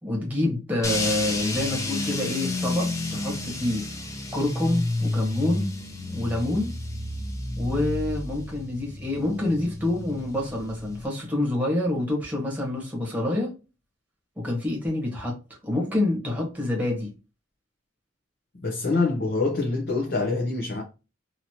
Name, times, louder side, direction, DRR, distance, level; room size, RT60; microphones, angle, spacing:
voice 1, 0.0-3.9 4.3-5.7 6.1-6.7 7.6-13.5 14.4-15.4 15.6-17.1, left 1 dB, 10° right, 1.0 m, -27 dB
sound 1, 0.8-11.1, left 2 dB, 15° left, 0.5 m, -31 dB
voice 2, 18.6-20.8, left 3 dB, 60° left, 0.7 m, -25 dB
3.0 x 2.7 x 2.8 m
head